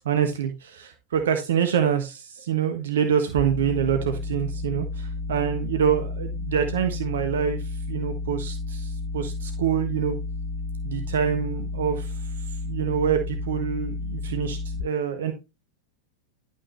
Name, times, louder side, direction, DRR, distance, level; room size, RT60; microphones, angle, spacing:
voice 1, 0.0-7.6 7.9-10.2 10.8-12.1 12.6-15.3, right 8 dB, 60° right, 7 dB, 1.4 m, -26 dB
sound 1, 3.4-14.8, left 3 dB, 30° left, 2.7 m, -32 dB
11.0 x 5.6 x 3.3 m, 0.25 s
figure-of-eight pair, 90°, 0 cm